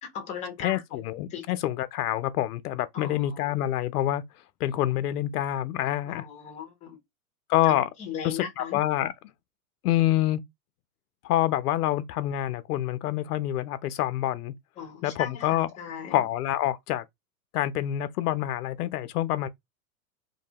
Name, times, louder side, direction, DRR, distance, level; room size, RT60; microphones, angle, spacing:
voice 1, 0.0-1.0 1.3-1.4 2.9-3.5 6.1-7.0 7.6-8.8 14.8-16.2, left 7 dB, 15° left, 0.6 m, -38 dB
voice 2, 0.6-4.2 4.6-6.3 7.5-7.9 8.2-9.1 9.8-10.4 11.2-14.5 15.0-15.7 16.1-17.0 17.5-19.5, left 13 dB, 75° left, 0.5 m, -27 dB
2.7 x 2.2 x 2.7 m
supercardioid pair, 150°, 46 cm